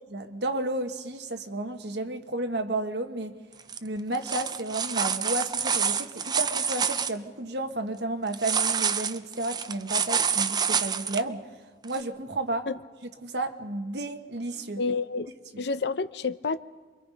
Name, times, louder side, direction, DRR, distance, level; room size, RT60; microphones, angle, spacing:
voice 1, 0.1-3.4 3.8-11.5 11.8-12.7 13.2-14.8 15.5-15.6, right 2 dB, 70° right, 7 dB, 1.4 m, -32 dB
sound 1, 3.6-3.8 4.1-7.1 8.3-11.2 11.9-12.0, right 7 dB, 25° right, 0.6 m, -27 dB
voice 2, 14.8-15.3 15.6-16.6, left 4 dB, 70° left, 14 dB, 0.7 m, -29 dB
28.0 x 23.0 x 5.3 m, 1.4 s
head